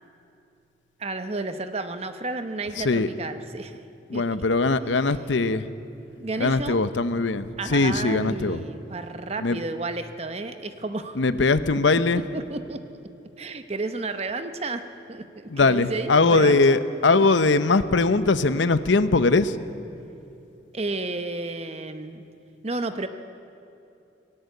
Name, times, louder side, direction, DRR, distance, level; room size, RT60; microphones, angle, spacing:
voice 1, 1.0-3.8 4.1-4.2 5.0-5.1 6.2-6.8 7.6-11.2 12.1-12.8 13.4-14.8 15.1-16.8 20.7-22.2 22.6-23.1, right 2 dB, 35° right, 8 dB, 0.8 m, -32 dB
voice 2, 4.1-5.7 6.4-8.6 9.4-9.6 11.2-12.2 15.5-19.6, left 3 dB, 85° left, 12 dB, 0.8 m, -21 dB
18.5 x 17.0 x 8.3 m, 2.7 s
head